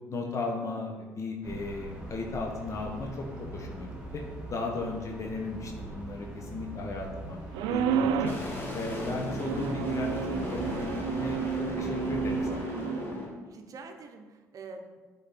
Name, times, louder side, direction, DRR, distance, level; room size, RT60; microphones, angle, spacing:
voice 1, 0.1-4.2 4.5-7.4 7.7-8.4 8.7-12.7, left 3 dB, 45° left, 1 dB, 1.1 m, -36 dB
sound 1, 1.4-12.6, right 1 dB, 10° right, 1.9 m, -42 dB
sound 2, 7.5-8.5 9.4-13.0, right 7 dB, 80° right, 0.4 m, -31 dB
sound 3, 8.2-13.3, left 1 dB, 30° left, 1.9 m, -36 dB
voice 2, 13.2-15.0, right 3 dB, 55° right, 5 dB, 0.8 m, -46 dB
8.1 x 3.8 x 4.2 m, 1.3 s
supercardioid pair, 65°, 7 cm